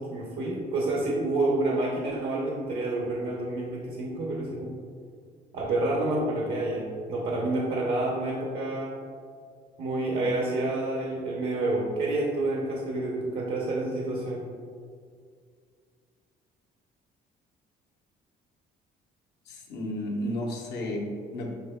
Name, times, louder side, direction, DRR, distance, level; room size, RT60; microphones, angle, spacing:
voice 1, 0.0-4.7 5.5-9.0 9.8-14.5, right 2 dB, 65° right, -1 dB, 0.7 m, -28 dB
voice 2, 19.4-21.5, left 1 dB, 80° left, -1 dB, 0.9 m, -32 dB
7.8 x 2.7 x 2.2 m, 2.1 s
cardioid pair, 110°, 17 cm